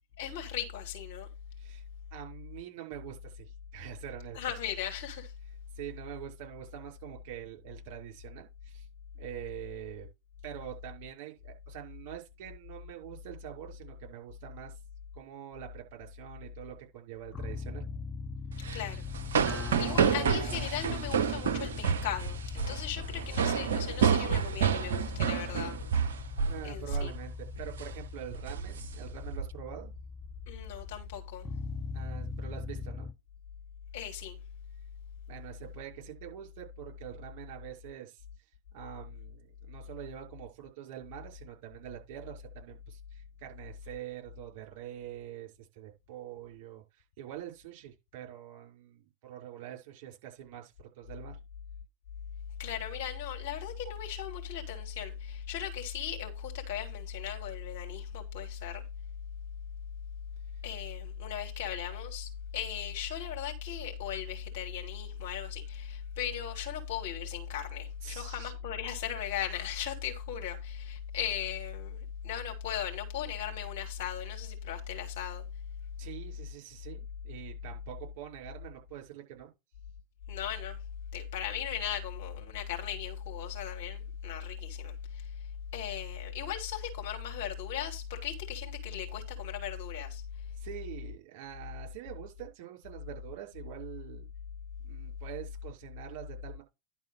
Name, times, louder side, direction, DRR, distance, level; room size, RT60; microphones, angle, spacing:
voice 1, 0.2-1.3 4.3-5.3 18.7-19.1 19.5-25.8 26.6-27.1 30.5-31.4 33.9-34.4 52.6-58.8 60.6-75.4 80.3-80.8 81.1-85.3 85.7-90.2, left 9 dB, 50° left, 2.9 m, -37 dB
voice 2, 2.1-4.4 5.8-8.9 9.2-10.1 10.4-14.7 15.1-17.9 26.5-29.9 31.9-33.1 35.3-38.2 38.7-51.4 68.0-68.5 76.0-79.5 90.6-94.3 94.8-96.6, right 12 dB, 45° right, 5.3 m, -45 dB
sound 1, 17.3-33.1, left 4 dB, 15° left, 0.8 m, -40 dB
sound 2, 18.5-26.6 26.9-27.2 27.5-27.9 28.3-29.5, right 7 dB, 60° right, 0.6 m, -29 dB
11.0 x 4.0 x 6.4 m
figure-of-eight pair, 90°, 0 cm